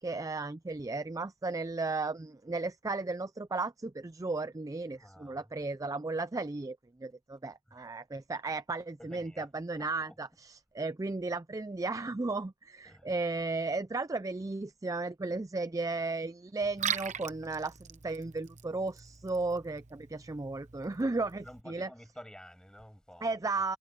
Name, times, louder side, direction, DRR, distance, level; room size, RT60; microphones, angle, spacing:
voice 1, 0.0-21.9 23.2-23.8, right 3 dB, 15° right, 0.4 m, -35 dB
voice 2, 5.0-5.4 9.0-9.5 9.8-10.2 12.9-13.1 21.4-23.4, equal, 5° left, 7.6 m, -51 dB
Liquid, 16.6-21.6, right 8 dB, 35° right, 0.9 m, -41 dB
head